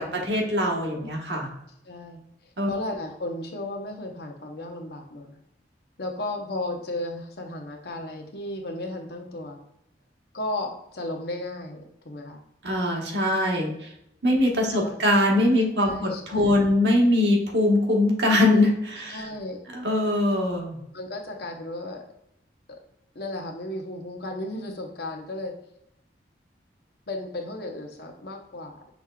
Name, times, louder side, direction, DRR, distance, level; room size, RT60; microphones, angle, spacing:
voice 1, 0.0-1.5 2.6-2.7 12.6-13.7 14.2-19.2 19.7-20.8, left 1 dB, 70° right, 0 dB, 1.2 m, -22 dB
voice 2, 1.8-2.2 2.7-5.3 6.0-9.6 10.3-12.4 14.7-15.0 15.8-16.7 19.1-19.6 20.9-22.0 22.7-22.8 23.1-25.5 27.1-28.8, left 2 dB, 60° left, 3 dB, 0.8 m, -34 dB
6.0 x 3.6 x 2.3 m, 0.79 s
head